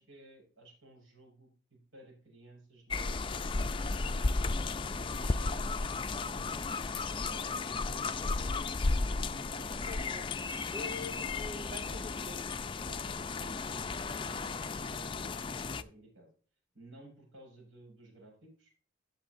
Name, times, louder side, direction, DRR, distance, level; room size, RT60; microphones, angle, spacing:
voice 1, 0.0-4.6 5.0-8.8 9.5-10.1 13.9-16.3 16.7-18.7, right 2 dB, 90° right, 0 dB, 6.1 m, -56 dB
sound 1, 2.9-15.8, left 3 dB, 25° left, 0.4 m, -34 dB
voice 2, 9.9-10.2 10.7-12.6 12.9-13.6, left 2 dB, 35° right, 2 dB, 1.4 m, -46 dB
16.5 x 7.2 x 2.6 m, 0.40 s
head